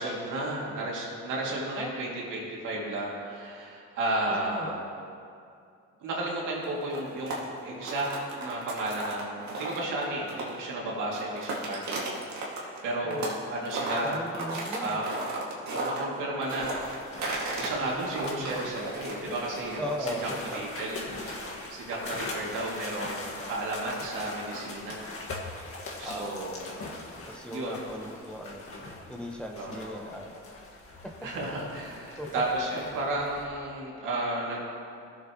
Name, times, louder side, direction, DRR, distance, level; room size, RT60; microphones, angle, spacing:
voice 1, 0.0-4.8 6.0-7.4 7.6-8.1 8.4-14.1 14.8-15.1 15.7-16.8 17.6-19.8 20.2-21.0 21.3-25.0 25.5-25.6 26.0-26.6 27.5-27.8 29.5-30.1 31.2-34.6, right 2 dB, 85° right, -4 dB, 2.6 m, -33 dB
voice 2, 4.3-4.8 13.0-13.3 14.0-15.0 17.7-18.0 19.8-20.7 26.0-26.3 27.3-28.6 29.1-30.3 32.2-32.4, equal, 5° left, 0 dB, 1.1 m, -37 dB
sound 1, 6.6-10.7 11.0-13.4 13.7-17.7 18.0-22.8, right 2 dB, 65° right, 2.2 m, -35 dB
sound 2, 16.6-33.4, left 2 dB, 50° left, 1.8 m, -41 dB
16.5 x 7.5 x 3.1 m, 2.4 s
cardioid pair, 90°, 30 cm